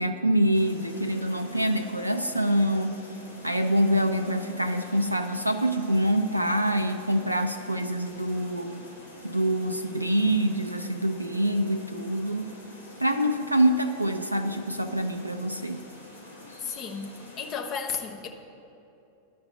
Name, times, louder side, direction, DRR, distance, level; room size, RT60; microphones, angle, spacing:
voice 1, 0.0-3.0 3.4-8.8 9.2-12.5 13.0-15.8, right 1 dB, 85° right, 7 dB, 0.4 m, -25 dB
sound 1, 0.5-17.6, left 1 dB, 80° left, 1.7 m, -46 dB
voice 2, 16.6-17.1 17.4-18.3, left 6 dB, 35° left, 3 dB, 1.0 m, -33 dB
10.5 x 5.2 x 8.1 m, 2.9 s
figure-of-eight pair, 90°, 0 cm